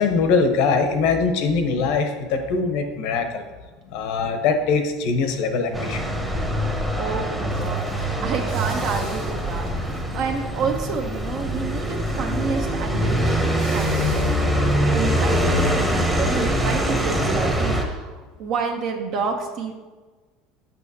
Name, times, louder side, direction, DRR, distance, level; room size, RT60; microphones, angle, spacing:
voice 1, 0.0-3.4 3.9-6.1, left 4 dB, 70° left, 6 dB, 0.9 m, -22 dB
sound 1, 5.2-17.1, right 2 dB, 75° right, 1.8 m, -41 dB
sound 2, 5.7-17.8, equal, 5° right, 0.9 m, -23 dB
voice 2, 7.0-19.7, right 5 dB, 55° right, 3 dB, 0.8 m, -29 dB
6.9 x 5.8 x 2.8 m, 1.3 s
supercardioid pair, 130°, 0 cm